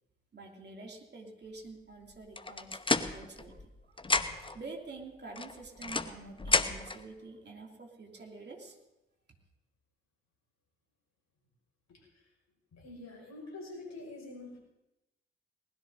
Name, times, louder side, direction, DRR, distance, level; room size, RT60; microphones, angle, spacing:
voice 1, 0.3-4.1 4.5-8.8, right 3 dB, 35° right, 3 dB, 3.0 m, -48 dB
sound 1, 2.4-3.7 4.0-4.6 5.4-7.0, left 3 dB, 15° left, 1.0 m, -31 dB
voice 2, 11.9-12.3 12.7-14.6, left 2 dB, 55° left, -1 dB, 6.0 m, -46 dB
19.5 x 12.0 x 3.9 m, 0.97 s
figure-of-eight pair, 45°, 32 cm